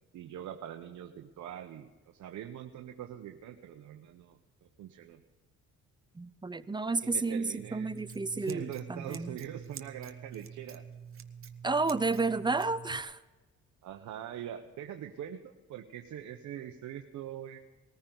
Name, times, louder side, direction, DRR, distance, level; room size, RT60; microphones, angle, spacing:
voice 1, 0.1-5.2 7.0-7.9 8.3-10.8 13.8-17.6, right 10 dB, 75° right, 4 dB, 1.0 m, -43 dB
voice 2, 6.1-9.4 11.6-13.2, right 3 dB, 15° right, 14 dB, 0.7 m, -31 dB
Scissors, 7.6-13.0, right 7 dB, 45° right, 1.2 m, -47 dB
20.5 x 14.5 x 3.9 m, 1.3 s
cardioid pair, 90°, 30 cm